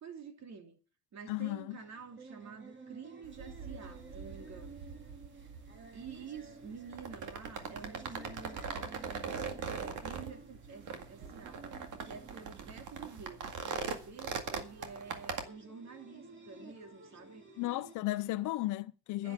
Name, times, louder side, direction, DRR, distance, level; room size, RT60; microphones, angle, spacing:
voice 1, 0.0-0.8 1.1-4.8 5.9-11.7 12.0-17.5 18.2-18.4 19.2-19.3, right 5 dB, 60° right, 2.9 m, -49 dB
voice 2, 1.3-1.8 17.6-19.3, left 17 dB, 90° left, 0.6 m, -34 dB
sound 1, 1.7-17.9, right 3 dB, 40° right, 2.7 m, -54 dB
sound 2, 3.2-15.4, right 5 dB, 80° right, 2.1 m, -42 dB
10.5 x 9.5 x 9.0 m
cardioid pair, 90°, 30 cm